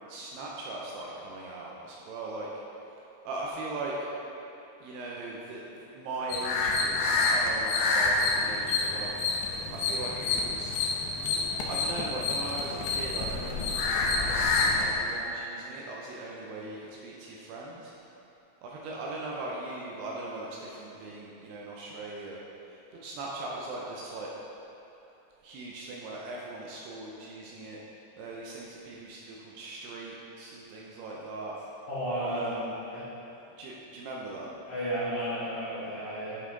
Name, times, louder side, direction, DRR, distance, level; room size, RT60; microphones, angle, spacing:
voice 1, 0.1-2.5 3.3-4.0 4.8-9.1 9.7-10.8 11.7-17.9 18.6-22.4 22.7-24.3 25.4-27.8 28.2-31.6 32.2-32.8 33.6-34.5, right 2 dB, 80° right, -4 dB, 2.5 m, -39 dB
sound 1, 6.3-14.9, left 3 dB, 85° left, 2.9 m, -28 dB
voice 2, 31.9-32.5 32.9-33.0 34.7-36.4, right 1 dB, 55° left, -12 dB, 2.5 m, -32 dB
9.8 x 5.4 x 3.8 m, 2.9 s
omnidirectional pair, 5.1 m